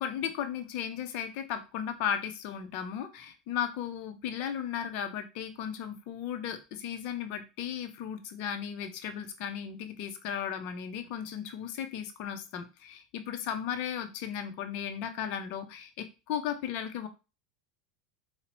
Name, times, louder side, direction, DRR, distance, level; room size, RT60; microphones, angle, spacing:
voice 1, 0.0-17.1, left 9 dB, 55° left, 9 dB, 0.7 m, -35 dB
3.9 x 2.9 x 3.0 m, 0.29 s
hypercardioid pair, 100°, 2 cm